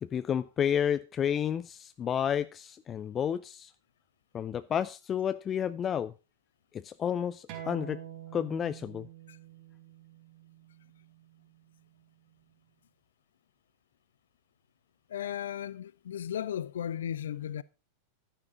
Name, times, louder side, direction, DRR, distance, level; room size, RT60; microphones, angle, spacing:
voice 1, 0.0-3.7 4.3-6.1 6.7-8.0 8.3-9.1, left 8 dB, 25° left, 0.5 m, -31 dB
sound 1, 7.5-12.7, right 10 dB, 45° right, 4.2 m, -47 dB
voice 2, 15.1-17.6, left 10 dB, 65° left, 0.7 m, -35 dB
12.0 x 10.5 x 3.7 m
figure-of-eight pair, 90°, 0 cm